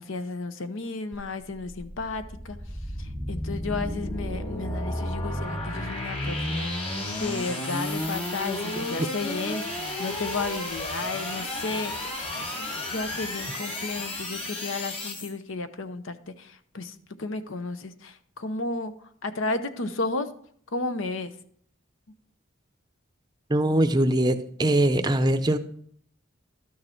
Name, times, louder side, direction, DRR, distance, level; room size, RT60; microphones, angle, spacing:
voice 1, 0.0-2.6 3.0-20.3 20.7-21.3, left 3 dB, 70° left, 11 dB, 0.8 m, -33 dB
sound 1, 1.1-15.3, left 1 dB, 25° left, 2.1 m, -32 dB
voice 2, 23.5-25.6, right 1 dB, 20° right, 9 dB, 0.6 m, -22 dB
12.5 x 6.6 x 4.5 m, 0.62 s
head